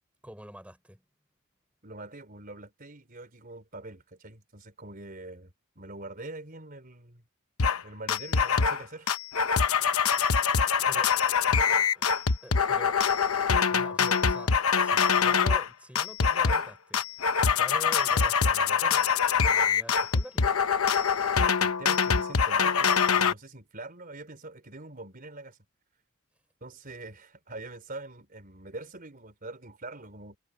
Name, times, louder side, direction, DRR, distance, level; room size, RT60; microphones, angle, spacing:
voice 1, 0.2-1.0 10.9-11.1 11.5-13.2 13.7-19.1 19.4-20.5, equal, 5° right, 4.4 m, -46 dB
voice 2, 1.8-7.2 7.8-9.2 21.6-25.6 26.6-30.4, right 2 dB, 40° right, 4.0 m, -44 dB
sound 1, 7.6-7.8 8.1-8.8 9.1-15.7 16.0-16.7 16.9-23.3, left 6 dB, 75° left, 1.0 m, -24 dB
head